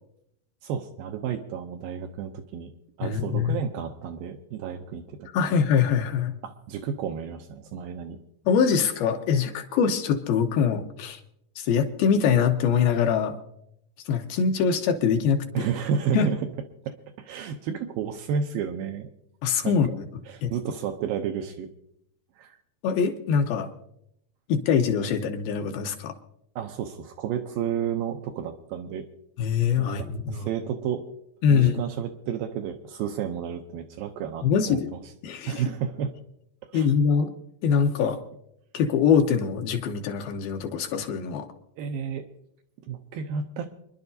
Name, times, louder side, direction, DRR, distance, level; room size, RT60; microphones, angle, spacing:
voice 1, 0.6-2.7 3.0-5.3 6.4-8.2 15.5-16.4 16.8-19.1 19.6-19.8 20.3-21.7 22.4-22.6 26.6-29.1 29.8-31.0 31.5-35.0 35.5-36.1 36.7-36.9 41.8-42.3 42.9-43.7, right 8 dB, 80° right, 6 dB, 2.2 m, -31 dB
voice 2, 3.0-3.6 5.3-6.3 8.5-11.2 11.6-13.4 14.1-15.4 16.1-16.3 19.4-20.0 20.4-20.5 22.8-23.7 24.5-26.2 29.4-30.5 31.4-31.8 34.4-34.9 35.2-35.6 36.7-37.3 37.6-38.2 38.7-41.5, left 6 dB, 75° left, 5 dB, 2.5 m, -23 dB
27.5 x 11.0 x 2.7 m, 0.77 s
omnidirectional pair, 4.6 m